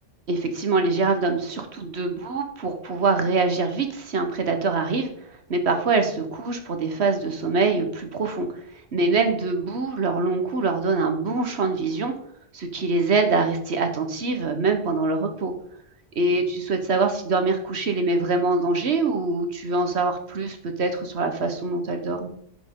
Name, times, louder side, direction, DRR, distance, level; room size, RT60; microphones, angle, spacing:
voice 1, 0.3-5.1 5.5-8.5 8.9-12.1 12.5-15.5 16.2-22.3, right 3 dB, 60° right, 6 dB, 1.3 m, -24 dB
10.5 x 6.0 x 3.7 m, 0.69 s
omnidirectional pair, 1.3 m